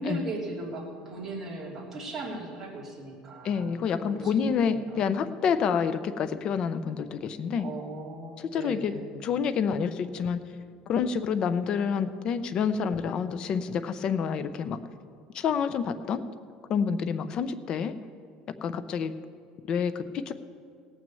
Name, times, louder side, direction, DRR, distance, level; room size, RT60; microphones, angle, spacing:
voice 1, 0.0-5.2 7.6-9.2, right 2 dB, 15° right, -6 dB, 3.0 m, -38 dB
voice 2, 3.4-7.7 8.5-9.0 9.2-10.4 10.9-14.8 15.3-16.2 16.7-17.9 18.6-19.1 19.7-20.3, left 6 dB, 40° left, 12 dB, 0.6 m, -28 dB
17.5 x 6.2 x 7.6 m, 2.2 s
cardioid pair, 150°, 2 cm